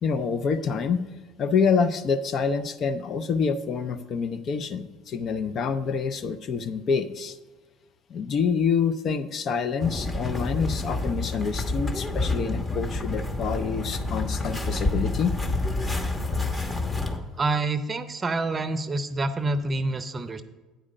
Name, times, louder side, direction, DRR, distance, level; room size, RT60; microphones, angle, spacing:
voice 1, 0.0-1.0 1.4-7.4 8.1-15.4, left 5 dB, 50° left, 11 dB, 0.5 m, -27 dB
sound 1, 9.8-17.2, left 2 dB, 20° left, 1.2 m, -28 dB
voice 2, 17.4-20.4, right 2 dB, 30° right, 11 dB, 0.6 m, -27 dB
9.1 x 4.9 x 6.5 m, 1.2 s
hypercardioid pair, 70°, 0 cm